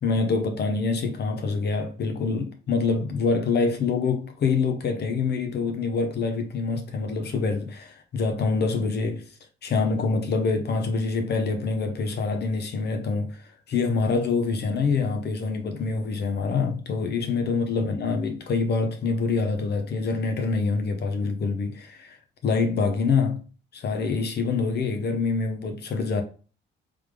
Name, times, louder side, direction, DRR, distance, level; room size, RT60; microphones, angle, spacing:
voice 1, 0.0-9.3 9.6-22.2 22.4-23.4 23.7-26.2, left 4 dB, 55° left, 0.8 m, -25 dB
3.5 x 3.2 x 3.4 m
cardioid pair, 90°, 20 cm